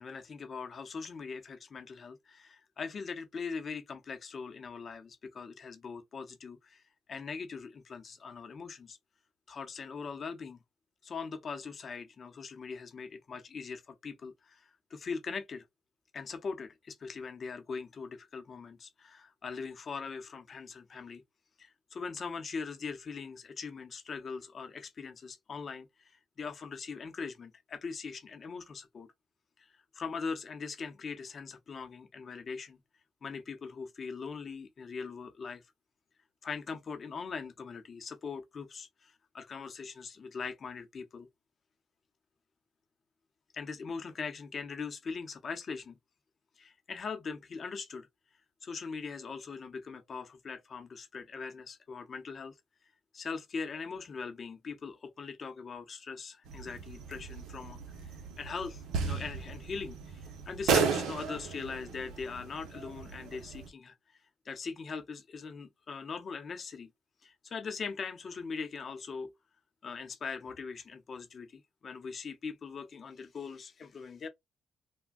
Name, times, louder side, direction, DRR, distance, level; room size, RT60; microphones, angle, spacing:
voice 1, 0.0-6.8 7.1-9.0 9.5-10.6 11.0-15.6 16.1-21.2 21.6-26.1 26.4-29.1 29.9-32.8 33.2-35.6 36.4-41.3 43.5-46.0 46.6-48.1 48.6-52.5 53.1-57.8 58.4-63.9 64.5-66.9 67.2-69.3 69.8-74.3, left 5 dB, 45° left, 0.6 m, -41 dB
sound 1, 56.5-63.7, right 5 dB, 85° right, 0.7 m, -35 dB
3.5 x 2.1 x 2.3 m
cardioid pair, 90°, 0 cm